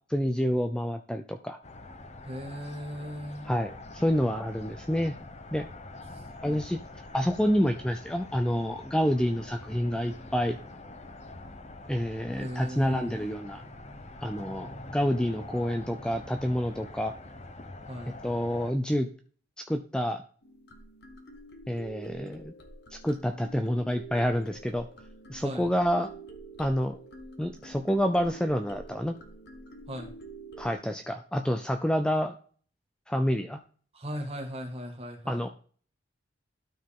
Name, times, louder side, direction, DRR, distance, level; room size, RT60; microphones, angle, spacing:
voice 1, 0.1-1.6 3.5-5.2 5.5-5.7 6.4-6.8 7.1-10.6 11.9-13.6 14.2-17.1 18.2-19.1 19.6-20.2 21.7-22.5 22.9-24.9 25.3-26.1 26.6-27.0 27.4-29.2 30.6-32.3 33.1-33.6 35.3-35.5, equal, 5° left, 6 dB, 0.5 m, -28 dB
sound 1, 1.6-18.7, left 2 dB, 35° left, 0.8 m, -45 dB
voice 2, 2.2-3.5 6.1-6.6 12.4-13.1 17.9-18.1 25.4-25.7 29.9-30.1 33.9-35.5, equal, 30° right, 1 dB, 1.9 m, -38 dB
sound 2, 20.4-30.7, right 2 dB, 60° left, 1.3 m, -47 dB
12.5 x 4.5 x 3.7 m, 0.43 s
head